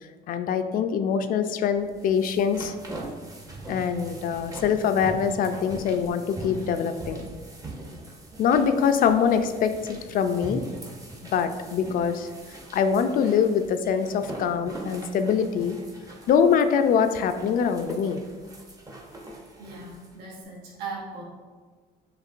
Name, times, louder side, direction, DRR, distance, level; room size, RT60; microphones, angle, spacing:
voice 1, 0.3-2.7 3.7-7.3 8.4-10.6 11.3-12.3 12.7-15.8 16.3-18.2, left 7 dB, 55° left, 8 dB, 0.4 m, -24 dB
sound 1, 1.7-20.2, right 2 dB, 20° right, 0.7 m, -42 dB
voice 2, 19.6-21.2, right 4 dB, 70° right, -4 dB, 1.2 m, -38 dB
6.5 x 3.0 x 2.5 m, 1.4 s
cardioid pair, 110°, 17 cm